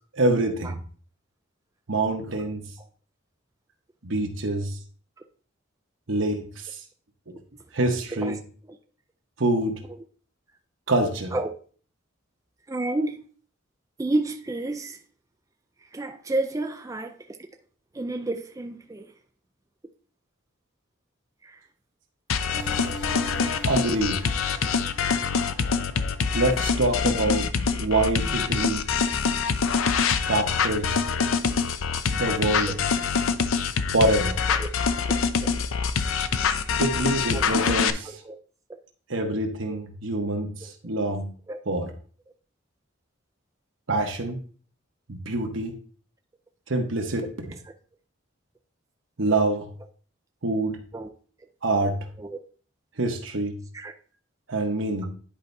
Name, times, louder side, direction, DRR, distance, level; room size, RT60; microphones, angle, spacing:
voice 1, 0.2-0.8 1.9-2.6 4.0-4.7 6.1-6.7 7.7-8.4 9.4-9.8 10.9-11.3 23.6-24.2 26.3-27.5 27.8-28.9 30.3-31.0 32.1-32.7 33.9-34.4 36.8-38.1 39.1-40.5 40.8-41.3 41.7-41.8 43.9-44.4 45.1-45.7 46.7-47.2 49.2-49.6 50.4-50.8 51.6-52.0 53.0-53.6 54.5-55.1, right 2 dB, 70° right, 1.2 m, -25 dB
voice 2, 12.7-13.2 14.0-15.0 15.8-17.4 17.9-19.1 21.4-21.6 22.7-22.9 31.1-31.3 32.7-32.8 34.5-34.7 35.0-35.2 35.4-35.5 37.3-38.4 39.7-39.8 40.6-40.7 41.5-41.6 50.9-51.1 52.2-52.4 53.7-53.9, right 2 dB, 15° right, 0.3 m, -31 dB
sound 1, 22.3-37.9, left 6 dB, 85° left, 0.5 m, -25 dB
sound 2, 22.5-27.7, left 1 dB, 55° left, 1.8 m, -41 dB
10.5 x 4.5 x 2.7 m
head